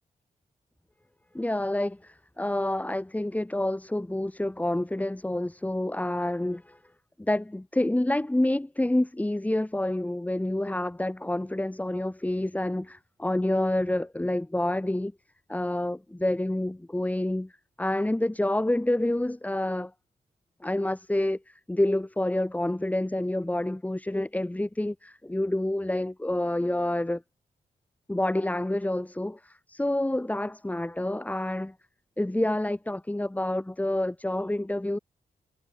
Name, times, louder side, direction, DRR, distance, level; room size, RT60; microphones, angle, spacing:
voice 1, 1.3-6.8 7.2-15.1 15.5-17.5 17.8-19.9 20.6-27.2 28.1-31.7 32.2-35.0, left 1 dB, 10° left, 7.4 m, -28 dB
wide cardioid pair, 110°, 15 cm